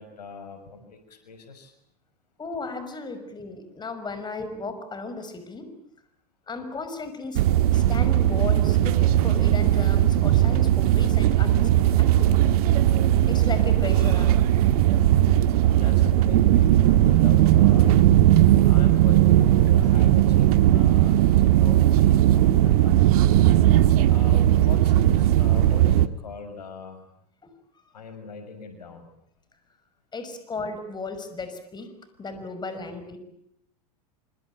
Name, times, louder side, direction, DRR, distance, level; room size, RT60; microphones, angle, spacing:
voice 1, 0.0-1.7 15.7-18.1 18.5-21.2 21.4-23.6 24.1-27.1 27.9-29.1, left 4 dB, 85° left, 8 dB, 6.3 m, -42 dB
voice 2, 2.4-5.7 6.5-7.5 7.7-12.5 13.2-14.4 27.4-27.5 30.1-31.9 32.2-33.2, left 3 dB, 20° left, 9 dB, 5.7 m, -35 dB
sound 1, 7.4-26.1, right 13 dB, 65° right, 1.6 m, -18 dB
26.0 x 24.5 x 9.0 m, 0.73 s
hypercardioid pair, 95°, 20 cm